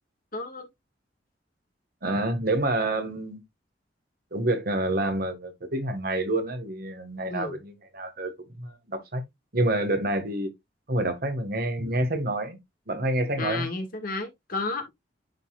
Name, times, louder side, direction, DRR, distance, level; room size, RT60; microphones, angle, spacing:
voice 1, 0.3-0.7 7.3-7.6 13.3-14.9, left 3 dB, 55° left, 1.7 m, -32 dB
voice 2, 2.0-3.4 4.3-8.3 8.6-9.2 9.5-10.5 10.9-12.6 12.9-13.7, right 1 dB, 55° right, 1.7 m, -28 dB
10.5 x 4.2 x 2.4 m
head